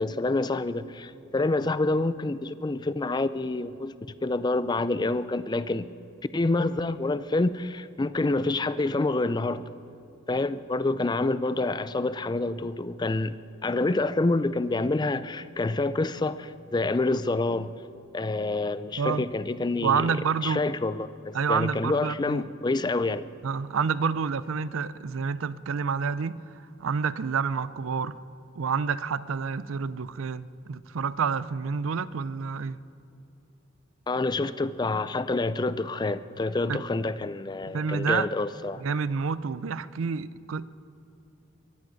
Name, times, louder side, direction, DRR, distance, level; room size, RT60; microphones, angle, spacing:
voice 1, 0.0-4.0 4.2-5.9 6.3-9.7 10.3-17.7 18.1-20.0 20.4-23.3 34.1-38.8, left 2 dB, 20° left, 0.4 m, -27 dB
voice 2, 19.8-20.7 21.3-22.4 23.4-26.4 26.8-28.2 28.6-32.8 36.7-36.8 37.7-38.3 38.8-40.7, right 6 dB, 80° right, 0.5 m, -28 dB
21.5 x 14.0 x 4.0 m
head